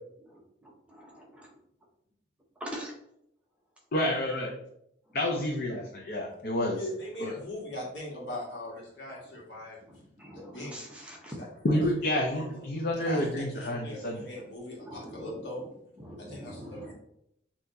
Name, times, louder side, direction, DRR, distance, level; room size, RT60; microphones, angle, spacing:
voice 1, 0.2-1.5 2.6-3.0 9.8-11.4 14.8-15.7 16.0-16.9, equal, 5° right, -2 dB, 0.8 m, -44 dB
voice 2, 3.9-4.5 5.1-6.8 7.2-7.3 11.6-14.2, left 1 dB, 55° left, -1 dB, 0.7 m, -29 dB
voice 3, 6.7-9.8 10.3-10.8 11.4-11.8 12.3-12.6 13.0-15.6 16.2-16.9, left 1 dB, 70° left, -4 dB, 1.7 m, -40 dB
6.5 x 2.9 x 2.7 m, 0.76 s
head